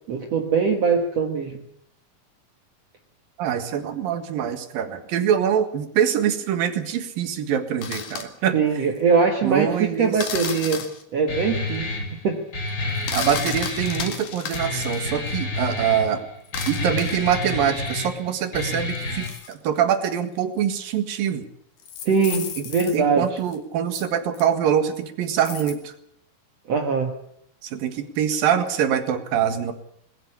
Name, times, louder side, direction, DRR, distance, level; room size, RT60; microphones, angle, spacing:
voice 1, 0.1-1.6 8.5-10.9 11.1-12.0 12.2-12.5 22.0-23.4 26.7-27.2, right 5 dB, 50° right, 4 dB, 2.3 m, -22 dB
voice 2, 3.4-8.6 9.4-10.2 13.1-16.2 16.7-21.5 22.9-25.9 27.6-29.7, right 9 dB, 70° right, 9 dB, 3.4 m, -24 dB
sound 1, 7.8-8.3 10.2-11.0 13.0-15.1 16.5-17.4 18.6-19.8 20.8-20.9 21.8-23.0 23.5-23.6 23.9-24.1 24.3-24.4 25.5-25.8, left 7 dB, 60° left, 3.3 m, -34 dB
Guitar, 11.3-19.3, left 2 dB, 30° left, 5.5 m, -29 dB
21.5 x 15.0 x 8.6 m, 0.71 s
omnidirectional pair, 4.3 m